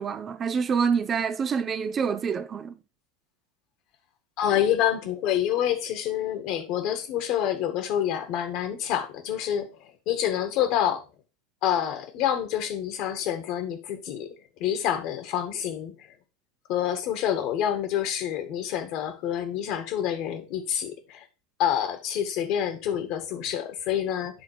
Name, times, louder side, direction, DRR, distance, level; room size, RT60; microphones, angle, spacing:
voice 1, 0.0-2.7, right 6 dB, 30° right, 0.6 m, -26 dB
voice 2, 4.4-11.0 11.6-14.3 14.6-16.1 16.7-21.2 21.6-24.4, left 10 dB, 55° left, 1.7 m, -27 dB
9.7 x 3.6 x 4.9 m
hypercardioid pair, 85°, 0 cm